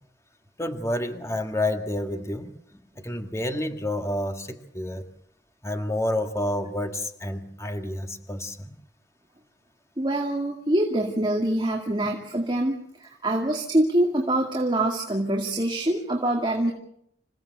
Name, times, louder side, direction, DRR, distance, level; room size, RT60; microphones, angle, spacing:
voice 1, 0.6-2.5 3.0-5.1 5.6-8.7, left 1 dB, 15° left, 6 dB, 1.7 m, -29 dB
voice 2, 10.0-16.7, right 1 dB, 25° right, 1 dB, 2.3 m, -25 dB
27.0 x 16.5 x 8.1 m, 0.72 s
head